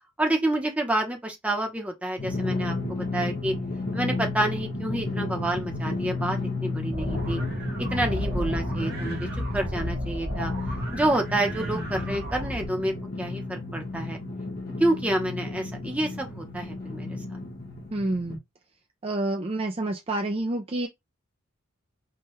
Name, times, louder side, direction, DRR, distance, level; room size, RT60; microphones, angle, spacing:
voice 1, 0.2-3.5 3.9-7.4 7.8-9.3 9.5-10.5 10.9-14.2 14.8-17.2, right 1 dB, 5° right, 0.8 m, -28 dB
Drum, 2.2-18.4, left 3 dB, 45° left, 1.3 m, -33 dB
sound 1, 6.9-12.7, equal, 50° right, 1.1 m, -33 dB
voice 2, 17.9-18.4 19.0-20.9, right 2 dB, 30° right, 0.4 m, -28 dB
4.6 x 2.3 x 3.1 m
head